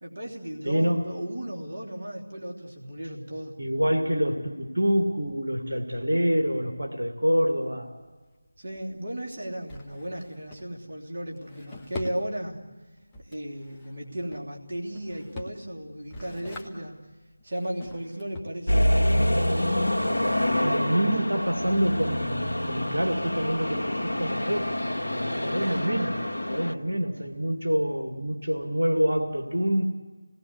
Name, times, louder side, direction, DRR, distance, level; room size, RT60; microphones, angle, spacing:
voice 1, 0.0-3.5 8.6-12.6 13.2-17.0 17.4-19.7 20.5-21.2, right 1 dB, 45° right, -1 dB, 3.1 m, -35 dB
voice 2, 0.6-1.1 3.6-7.9 20.6-24.8 25.1-29.8, equal, 75° right, 3 dB, 2.4 m, -26 dB
Drawer open or close, 7.6-22.7, left 2 dB, 10° left, 1.6 m, -46 dB
sound 1, 18.7-26.7, left 1 dB, 65° left, 1.7 m, -26 dB
28.0 x 19.5 x 8.1 m, 1.3 s
figure-of-eight pair, 165°, 0 cm